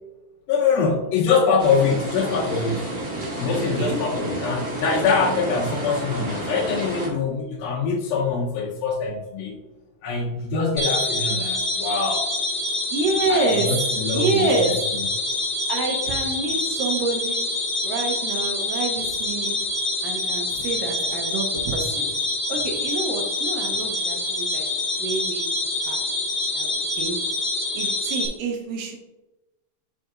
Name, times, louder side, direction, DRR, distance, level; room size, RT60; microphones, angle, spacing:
voice 1, 0.5-2.9 3.4-9.6 10.0-12.3 13.3-15.1, left 4 dB, 75° left, -5 dB, 2.6 m, -24 dB
sound 1, 1.6-7.1, right 1 dB, 25° right, 1.6 m, -30 dB
voice 2, 3.5-4.0 12.9-13.8 14.1-14.9 15.7-17.5 17.8-19.6 20.0-22.1 22.5-24.7 25.0-25.5 25.8-26.0 26.5-27.2 27.8-29.0, right 3 dB, 75° right, 2 dB, 2.2 m, -27 dB
sound 2, 10.8-28.3, left 2 dB, 45° left, 1.2 m, -26 dB
7.3 x 6.4 x 2.4 m, 1.0 s
omnidirectional pair, 4.4 m